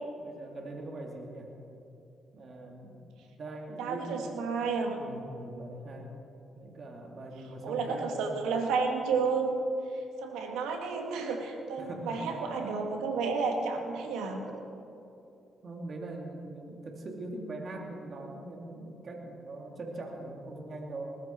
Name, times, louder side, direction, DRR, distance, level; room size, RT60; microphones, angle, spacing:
voice 1, 0.2-1.5 2.3-3.1 3.3-4.5 5.0-6.1 6.6-8.3 11.8-12.2 12.6-12.7 14.5-14.6 15.6-21.0, right 2 dB, 55° right, 1 dB, 2.7 m, -42 dB
voice 2, 3.8-5.0 7.6-9.5 10.2-14.4, right 5 dB, 85° right, 3 dB, 2.0 m, -31 dB
20.0 x 14.5 x 4.6 m, 2.7 s
supercardioid pair, 55°, 0 cm